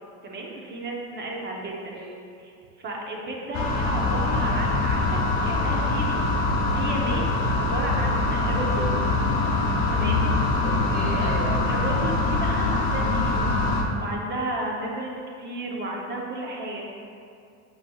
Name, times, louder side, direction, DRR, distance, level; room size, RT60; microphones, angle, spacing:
voice 1, 0.2-1.9 2.4-6.2 6.7-7.3 7.5-8.9 9.9-10.2 11.7-13.5 14.0-15.1 15.4-16.9, right 2 dB, 25° right, -1 dB, 0.8 m, -33 dB
voice 2, 1.6-2.2 10.6-11.7, right 2 dB, 55° right, -1 dB, 1.3 m, -35 dB
sound 1, 3.5-13.8, left 2 dB, 45° left, 0.8 m, -23 dB
7.2 x 5.6 x 2.3 m, 2.4 s
cardioid pair, 145°, 40 cm